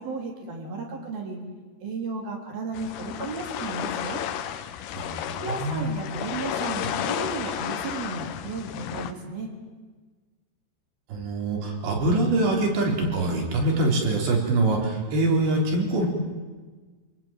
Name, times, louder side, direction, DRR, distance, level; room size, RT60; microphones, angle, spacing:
voice 1, 0.0-1.4 1.8-4.2 5.4-9.5, right 3 dB, 55° right, 1 dB, 5.2 m, -34 dB
sound 1, 2.8-9.1, left 10 dB, 70° left, 3.0 m, -32 dB
voice 2, 4.9-5.9 11.1-16.1, right 2 dB, 70° right, 0 dB, 6.4 m, -24 dB
28.0 x 20.0 x 9.1 m, 1.4 s
omnidirectional pair, 5.2 m